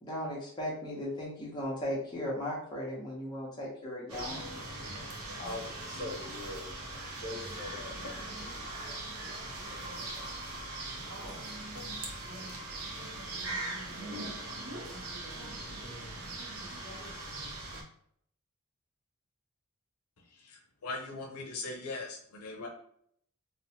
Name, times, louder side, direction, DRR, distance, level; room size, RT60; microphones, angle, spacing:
voice 1, 0.0-4.5, left 1 dB, 20° left, -5 dB, 0.7 m, -37 dB
sound 1, 4.1-17.8, right 2 dB, 85° right, 0.6 m, -40 dB
voice 2, 5.1-6.7 7.2-7.9, left 2 dB, 40° left, -3 dB, 1.0 m, -42 dB
voice 3, 20.4-22.7, left 3 dB, 80° left, 1 dB, 0.5 m, -40 dB
2.9 x 2.1 x 2.7 m, 0.66 s
head